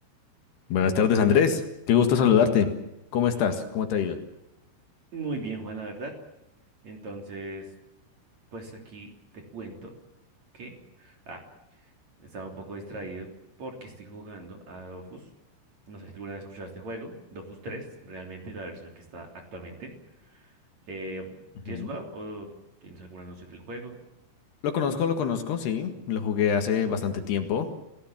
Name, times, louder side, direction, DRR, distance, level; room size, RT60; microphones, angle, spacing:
voice 1, 0.7-1.6 1.9-2.7 3.1-4.2 21.7-21.9 24.6-27.7, left 7 dB, 65° left, 6 dB, 3.7 m, -23 dB
voice 2, 5.1-6.1 6.8-7.7 8.5-9.9 10.5-11.4 11.7-11.9 12.2-13.3 13.6-15.3 15.9-20.6 20.9-21.3 21.6-22.5 22.8-24.0, right 2 dB, 40° right, 2 dB, 4.2 m, -39 dB
28.5 x 18.0 x 7.4 m, 0.91 s
omnidirectional pair, 5.3 m